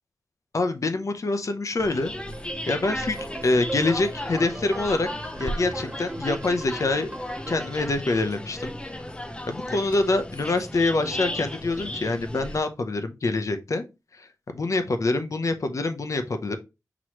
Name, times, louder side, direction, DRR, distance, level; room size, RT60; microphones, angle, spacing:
voice 1, 0.5-2.1 2.7-5.1 5.4-7.1 7.5-8.7 9.5-13.8 14.1-14.3 14.5-16.6, left 2 dB, 50° left, 8 dB, 0.7 m, -25 dB
sound 1, 1.8-12.6, left 1 dB, 15° left, 0.6 m, -35 dB
sound 2, 2.3-7.8, right 2 dB, 20° right, 0.8 m, -39 dB
6.0 x 3.0 x 3.0 m, 0.25 s
wide cardioid pair, 85°, 7 cm